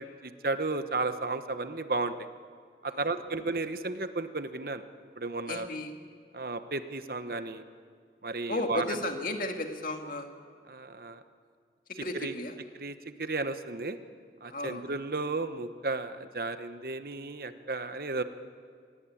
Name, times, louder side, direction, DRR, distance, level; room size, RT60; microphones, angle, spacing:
voice 1, 0.0-2.3 2.8-4.8 5.2-5.7 6.3-7.6 8.2-9.0 10.7-11.2 12.2-12.3 12.8-14.0 14.4-18.2, right 3 dB, 55° right, 10 dB, 1.1 m, -33 dB
voice 2, 5.5-5.9 8.5-10.3 12.0-12.5 14.5-14.8, left 1 dB, 50° left, 4 dB, 2.3 m, -34 dB
25.5 x 18.5 x 8.6 m, 2.1 s
head